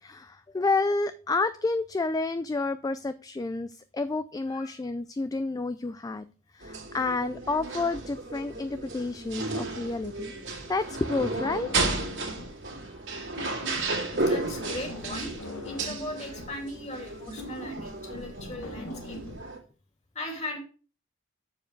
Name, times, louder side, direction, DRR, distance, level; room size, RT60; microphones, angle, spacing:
voice 1, 0.0-6.2 6.5-11.9 18.8-18.9, left 3 dB, 20° left, 12 dB, 0.3 m, -30 dB
voice 2, 4.5-4.8 12.8-12.9 14.2-15.3 15.6-19.2 20.1-20.6, left 1 dB, 35° left, 2 dB, 2.6 m, -38 dB
sound 1, 6.6-19.6, right 3 dB, 60° right, 2.3 m, -34 dB
sound 2, 11.4-12.6 12.9-19.4, left 1 dB, 75° left, 1.7 m, -41 dB
7.2 x 6.9 x 4.6 m, 0.36 s
head